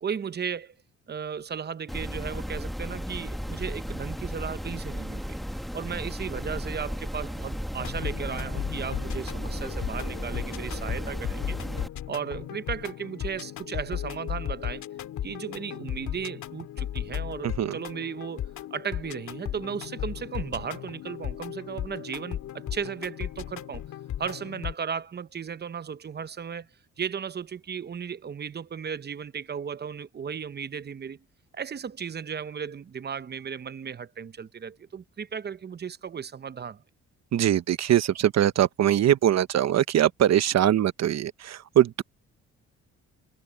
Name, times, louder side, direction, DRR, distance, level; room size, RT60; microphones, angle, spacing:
voice 1, 0.0-0.8 1.1-5.4 5.7-11.6 12.1-14.8 15.2-23.8 24.2-26.7 27.0-31.2 31.5-36.8, right 7 dB, 35° right, 0.9 m, -35 dB
sound 1, 1.9-11.9, equal, ahead, 1.6 m, -34 dB
sound 2, 7.8-24.7, left 11 dB, 75° left, 2.2 m, -36 dB
voice 2, 17.4-17.8 37.3-42.0, right 11 dB, 60° right, 1.0 m, -22 dB
cardioid pair, 90°, 30 cm